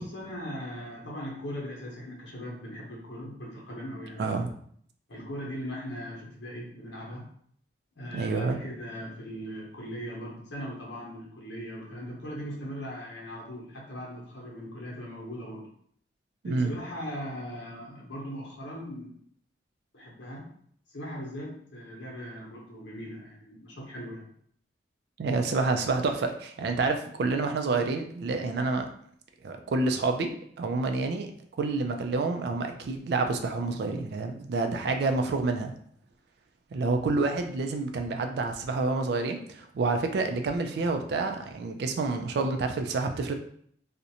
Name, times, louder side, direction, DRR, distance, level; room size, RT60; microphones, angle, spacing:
voice 1, 0.0-4.3 5.1-7.3 7.9-15.7 16.4-19.1 19.9-20.5 20.9-24.2, equal, 80° left, -4 dB, 0.8 m, -39 dB
voice 2, 4.2-4.5 8.1-8.6 16.4-16.7 25.2-28.9 29.4-30.3 30.6-31.3 31.6-35.7 36.7-43.3, right 3 dB, 60° right, 6 dB, 0.3 m, -28 dB
2.5 x 2.1 x 2.7 m, 0.63 s
head